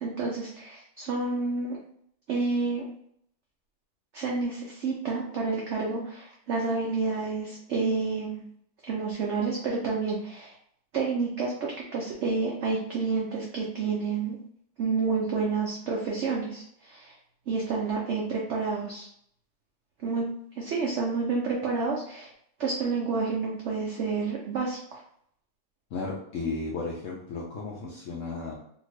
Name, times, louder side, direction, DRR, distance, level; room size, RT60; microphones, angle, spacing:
voice 1, 0.0-1.8 2.3-2.9 4.1-8.4 8.8-10.5 10.9-14.4 14.8-17.1 17.5-19.1 20.0-20.3 20.6-22.3 22.6-25.0, right 4 dB, 90° right, -2 dB, 0.6 m, -29 dB
voice 2, 25.9-28.5, left 3 dB, 70° left, -3 dB, 0.7 m, -34 dB
2.8 x 2.6 x 3.0 m, 0.67 s
omnidirectional pair, 1.9 m